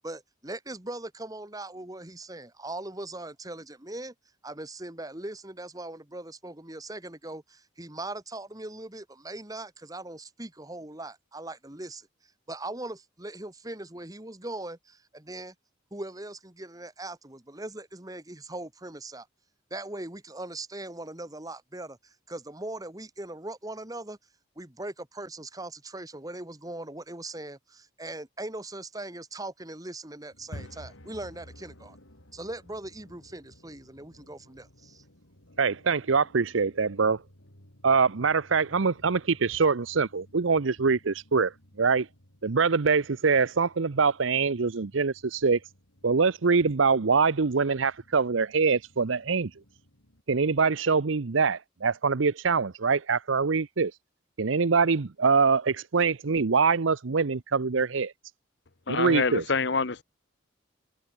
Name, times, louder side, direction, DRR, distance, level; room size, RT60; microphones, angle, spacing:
voice 1, 0.0-4.1 4.4-12.1 12.5-15.5 15.9-19.3 19.7-24.2 24.6-32.0 32.3-35.0, right 2 dB, 20° right, 2.0 m, -40 dB
sound 1, 30.3-50.2, left 1 dB, 85° left, 6.2 m, -54 dB
voice 2, 35.6-37.2 37.8-41.5 41.8-42.1 42.4-45.6 46.0-49.5 50.3-53.9 54.4-58.1 58.9-59.4, right 5 dB, 80° right, 0.7 m, -24 dB
voice 3, 58.9-60.0, left 4 dB, 60° left, 1.0 m, -26 dB
head